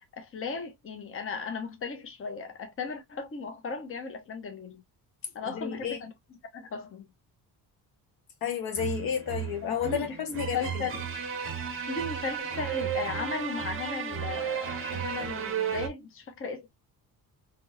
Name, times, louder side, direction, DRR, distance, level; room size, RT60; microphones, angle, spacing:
voice 1, 0.2-4.8 5.3-6.1 6.5-7.1 9.6-11.0 11.9-16.7, left 4 dB, 30° left, 0.8 m, -36 dB
voice 2, 5.5-6.0 8.4-10.9, left 8 dB, 60° left, 0.8 m, -31 dB
sound 1, 8.8-15.9, right 8 dB, 35° right, 0.6 m, -34 dB
2.8 x 2.7 x 2.4 m
cardioid pair, 130°, 40 cm